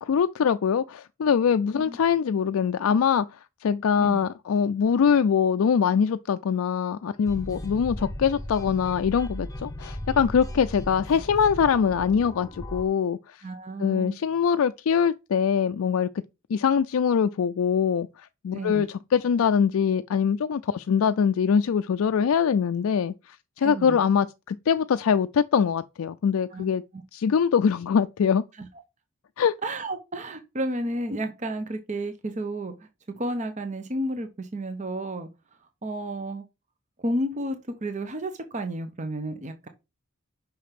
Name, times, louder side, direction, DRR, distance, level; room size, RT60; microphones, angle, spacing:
voice 1, 0.0-3.3 3.6-13.4 13.8-16.1 16.5-26.8 27.1-28.4 29.4-29.5, left 7 dB, 80° left, 0.4 m, -23 dB
sound 1, 7.3-12.8, left 1 dB, 15° left, 1.0 m, -36 dB
voice 2, 13.4-14.2 18.5-18.9 23.6-24.0 26.5-26.6 26.9-27.0 28.6-28.7 29.6-32.9 33.2-35.3 35.8-36.4 37.0-39.7, right 1 dB, 35° right, 0.8 m, -32 dB
5.8 x 5.1 x 5.8 m
head